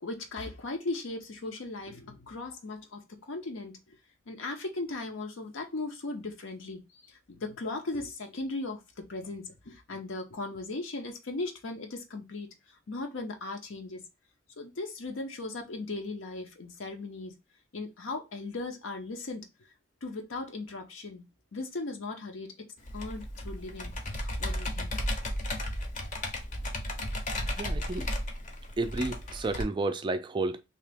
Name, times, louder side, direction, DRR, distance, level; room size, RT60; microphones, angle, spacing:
voice 1, 0.0-3.0 3.3-4.0 4.3-14.0 14.6-17.3 17.7-19.5 20.0-21.3 21.5-22.5 22.9-24.9, left 2 dB, 75° left, 0.7 m, -38 dB
Computer keyboard, 22.9-29.6, left 1 dB, 40° left, 0.7 m, -34 dB
voice 2, 27.6-28.1 28.8-30.6, right 2 dB, 25° right, 0.3 m, -31 dB
2.9 x 2.8 x 3.3 m
head